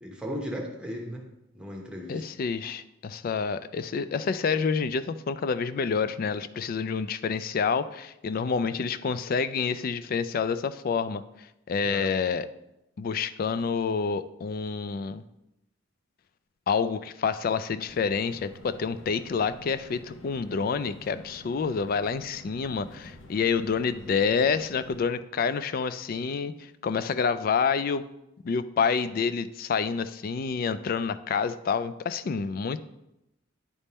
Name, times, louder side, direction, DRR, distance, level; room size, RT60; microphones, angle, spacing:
voice 1, 0.0-1.2 1.5-2.2 11.8-12.1, equal, 5° right, 0 dB, 1.0 m, -36 dB
voice 2, 2.1-11.2 11.7-12.5 13.0-15.2 16.7-28.1 28.4-32.8, left 5 dB, 45° left, 13 dB, 0.3 m, -28 dB
sound 1, 17.8-25.1, left 1 dB, 70° left, 0.8 m, -49 dB
9.9 x 3.5 x 4.2 m, 0.89 s
head